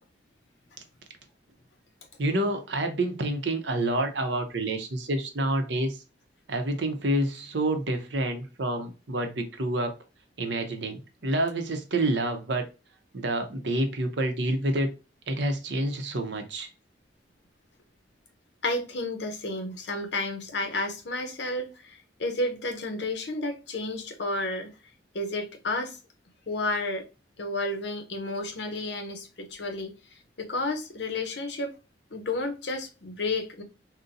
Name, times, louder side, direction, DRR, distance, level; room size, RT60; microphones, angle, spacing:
voice 1, 2.2-6.0 6.5-9.9 10.4-12.7 13.1-14.9 15.3-16.7, right 1 dB, 65° right, 0.7 m, -28 dB
voice 2, 18.6-24.7 25.1-26.0 26.5-27.0 27.4-29.9 30.4-31.7 32.1-33.6, left 2 dB, 65° left, 0.8 m, -31 dB
3.8 x 2.1 x 2.6 m
head